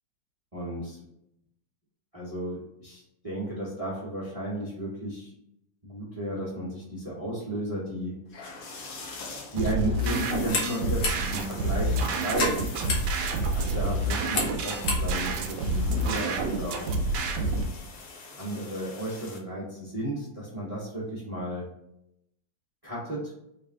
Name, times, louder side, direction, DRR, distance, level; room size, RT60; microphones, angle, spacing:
voice 1, 0.5-1.0 2.1-5.3 5.8-8.2 9.5-12.7 13.5-16.8 18.4-21.7 22.8-23.3, right 1 dB, 35° right, -7 dB, 0.5 m, -33 dB
sound 1, 8.3-19.4, left 3 dB, 60° left, 1.0 m, -44 dB
sound 2, 9.6-17.6, right 2 dB, 75° right, 1.1 m, -28 dB
sound 3, 10.2-16.5, left 3 dB, 75° left, 1.6 m, -35 dB
3.9 x 2.5 x 3.6 m, 0.80 s
omnidirectional pair, 2.0 m